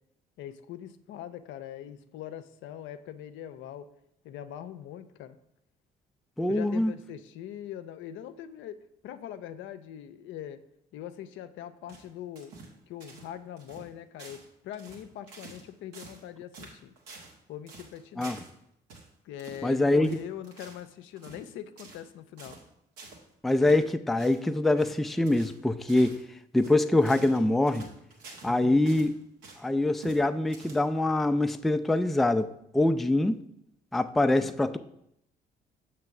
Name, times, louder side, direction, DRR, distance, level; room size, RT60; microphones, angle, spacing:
voice 1, 0.4-3.9 4.2-5.4 6.5-8.8 9.0-10.6 10.9-12.5 12.9-16.9 17.5-18.4 19.2-22.6 28.4-28.8 34.4-34.8, left 10 dB, 65° left, 0.5 m, -42 dB
voice 2, 6.4-6.9 18.2-18.4 19.6-20.2 23.4-26.2 26.5-27.9 28.4-29.1 29.6-33.4 33.9-34.8, left 2 dB, ahead, 0.4 m, -24 dB
sound 1, 11.9-12.8 13.0-13.3 13.6-13.9 14.2-14.5 14.7-15.7 15.9-16.3 16.5-17.4 17.7-18.5 18.9-19.1 19.4-19.7 20.0-20.9 21.2-21.5 21.8-22.1 22.4-22.7 23.0-23.2 23.6-23.8 24.2-24.4 24.8-25.0 25.3-25.6 25.9-26.2 26.6-28.6 28.9-29.7 30.0-30.2 30.5-31.1, right 3 dB, 85° right, 1.3 m, -48 dB
6.7 x 3.2 x 5.8 m
hypercardioid pair, 55°, 21 cm